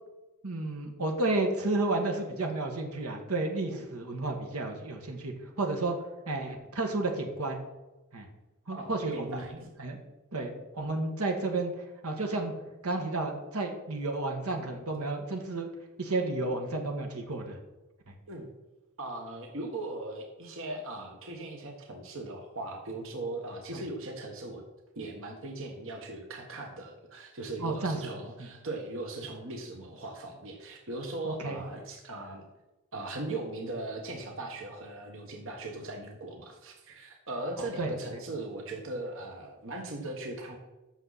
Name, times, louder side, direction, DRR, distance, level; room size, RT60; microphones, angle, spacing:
voice 1, 0.4-6.0 6.3-7.6 8.1-8.3 8.7-10.0 10.3-12.5 12.8-15.7 16.0-17.6 18.1-18.2 23.7-23.8 27.6-28.1 28.4-28.5 31.2-31.6 37.6-37.9, right 2 dB, 80° right, 3 dB, 1.6 m, -32 dB
voice 2, 8.7-9.5 18.3-18.5 19.0-24.6 24.9-32.4 32.9-40.6, right 2 dB, 65° right, 2 dB, 1.4 m, -39 dB
14.0 x 6.3 x 4.1 m, 1.1 s
head